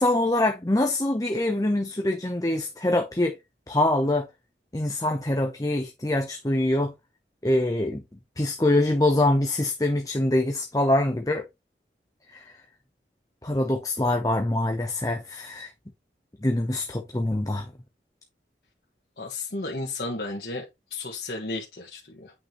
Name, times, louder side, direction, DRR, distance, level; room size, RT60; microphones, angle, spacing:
voice 1, 0.0-3.4 3.7-4.3 4.7-6.9 7.4-8.0 8.4-11.5 12.3-12.4 13.4-15.7 16.4-17.7, left 1 dB, 20° left, 0.8 m, -24 dB
voice 2, 19.2-20.6 20.9-22.3, left 2 dB, 60° left, 1.7 m, -33 dB
8.6 x 5.6 x 3.0 m
head